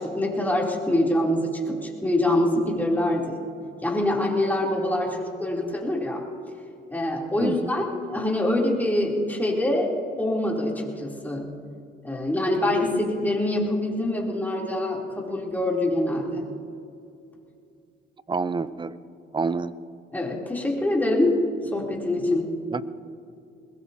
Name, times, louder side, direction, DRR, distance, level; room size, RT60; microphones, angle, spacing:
voice 1, 0.0-3.4 3.8-6.2 6.9-9.9 10.2-11.5 12.0-16.4 20.1-22.5, left 1 dB, 10° left, -3 dB, 3.3 m, -25 dB
voice 2, 7.4-7.7 18.3-19.0 19.3-19.7 22.7-22.8, right 4 dB, 25° right, 15 dB, 0.6 m, -27 dB
21.5 x 21.5 x 2.8 m, 2.5 s
cardioid pair, 90°, 20 cm